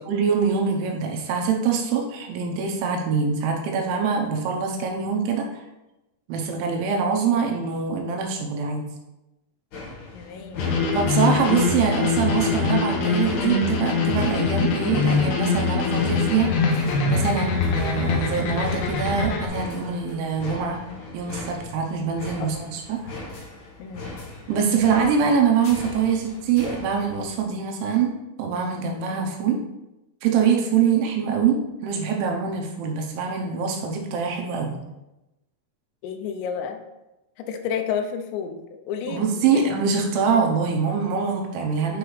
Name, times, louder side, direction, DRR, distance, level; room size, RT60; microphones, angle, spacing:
voice 1, 0.0-5.6 6.3-8.8 10.9-20.8 21.1-23.0 24.5-28.1 28.4-29.6 30.2-34.8 39.1-42.0, right 6 dB, 75° right, 1 dB, 3.1 m, -24 dB
sound 1, 9.7-27.4, left 2 dB, 55° left, 2.2 m, -39 dB
voice 2, 10.1-10.7 22.4-22.8 23.8-24.1 30.8-31.1 36.0-36.8 37.4-39.7, left 7 dB, 90° left, 5 dB, 3.4 m, -31 dB
sound 2, 10.6-19.5, left 4 dB, 75° left, 2.3 m, -23 dB
9.4 x 5.9 x 3.2 m, 0.97 s
omnidirectional pair, 5.7 m